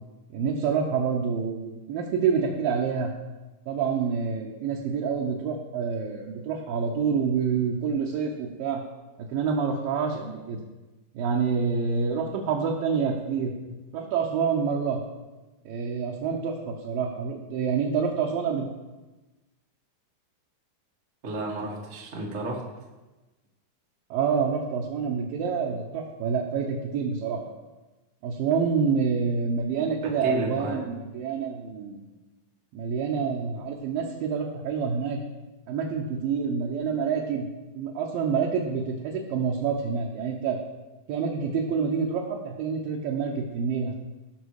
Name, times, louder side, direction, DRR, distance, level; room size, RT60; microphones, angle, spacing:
voice 1, 0.3-3.1 3.7-8.8 9.2-10.6 11.1-13.5 13.9-15.0 15.6-18.7 24.1-27.4 28.2-32.0 32.7-35.2 35.7-37.5 37.8-40.6 41.1-43.9, right 6 dB, 70° right, -1 dB, 2.5 m, -27 dB
voice 2, 21.2-22.6 30.0-30.8, right 1 dB, 50° right, -1 dB, 0.9 m, -31 dB
18.0 x 6.1 x 4.8 m, 1.1 s
omnidirectional pair, 4.6 m